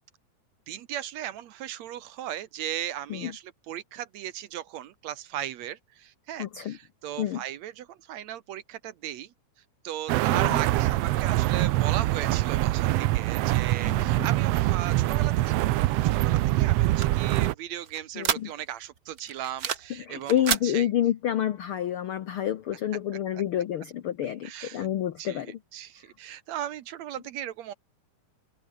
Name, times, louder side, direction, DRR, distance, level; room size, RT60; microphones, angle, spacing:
voice 1, 0.7-9.3 9.8-15.6 15.9-20.9 24.4-24.9 25.2-27.7, right 11 dB, 65° right, 2.1 m, -37 dB
voice 2, 6.4-6.8 7.2-7.4 10.3-10.6 13.9-14.3 18.2-18.5 19.9-25.6, left 11 dB, 75° left, 1.3 m, -29 dB
sound 1, 10.1-17.5, right 17 dB, 85° right, 1.4 m, -24 dB
sound 2, 16.3-18.9 19.2-20.0 20.2-20.7, right 7 dB, 50° right, 1.1 m, -31 dB
omnidirectional pair, 3.6 m